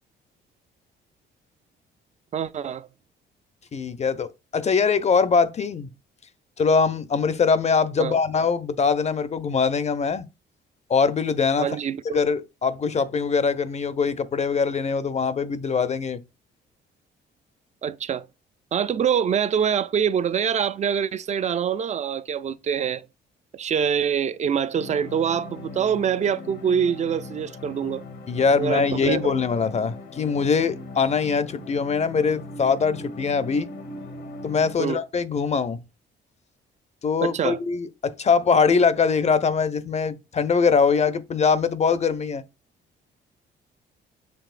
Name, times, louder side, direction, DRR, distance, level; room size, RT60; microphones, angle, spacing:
voice 1, 2.3-2.9 8.0-8.2 11.6-12.2 17.8-18.3 18.7-23.1 23.5-28.0 28.6-29.3 34.8-35.0 37.2-37.6, right 8 dB, 35° right, 0.3 m, -25 dB
voice 2, 3.7-5.9 6.6-10.3 10.9-11.7 12.1-16.2 28.3-33.7 34.4-35.8 37.0-42.4, left 5 dB, 35° left, 0.5 m, -22 dB
sound 1, 24.7-34.7, left 2 dB, 85° left, 1.3 m, -39 dB
6.9 x 3.1 x 2.4 m
cardioid pair, 90°, 20 cm